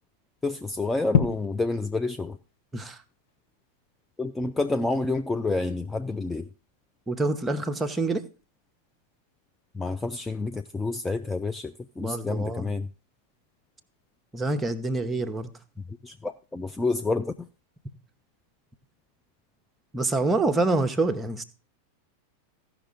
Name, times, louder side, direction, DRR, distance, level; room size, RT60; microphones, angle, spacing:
voice 1, 0.4-2.4 4.2-6.5 9.7-12.9 16.0-17.5, left 3 dB, 10° left, 0.4 m, -29 dB
sound 1, 0.5-17.7, left 8 dB, 55° left, 1.2 m, -39 dB
voice 2, 7.1-8.2 12.0-12.7 14.3-15.5 19.9-21.4, right 2 dB, 10° right, 0.9 m, -26 dB
15.0 x 5.8 x 3.8 m
figure-of-eight pair, 90°, 0 cm